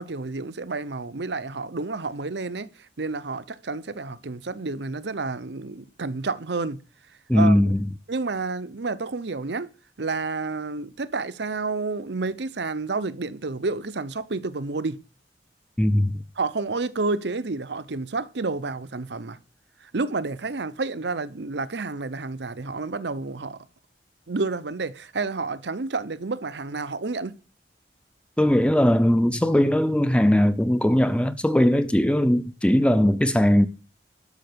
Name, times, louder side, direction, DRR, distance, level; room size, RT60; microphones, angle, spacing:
voice 1, 0.0-2.7 3.0-6.8 7.3-7.6 8.1-9.7 10.0-15.0 16.4-19.4 19.8-23.6 24.3-27.4, right 3 dB, 70° right, 0.8 m, -30 dB
voice 2, 7.3-7.9 15.8-16.2 28.4-33.7, equal, 5° left, 0.5 m, -19 dB
12.0 x 6.5 x 6.8 m
head